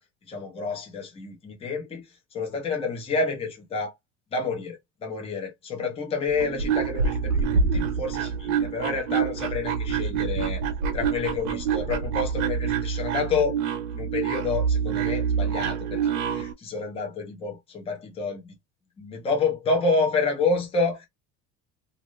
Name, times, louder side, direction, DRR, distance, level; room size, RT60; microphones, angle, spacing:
voice 1, 0.3-2.0 2.3-3.9 4.3-10.6 10.9-13.6 13.9-16.0 16.3-18.5 19.0-21.1, left 4 dB, 20° left, 0.8 m, -29 dB
sound 1, 6.3-16.5, right 6 dB, 90° right, 0.9 m, -26 dB
2.6 x 2.5 x 3.1 m
cardioid pair, 175°, 32 cm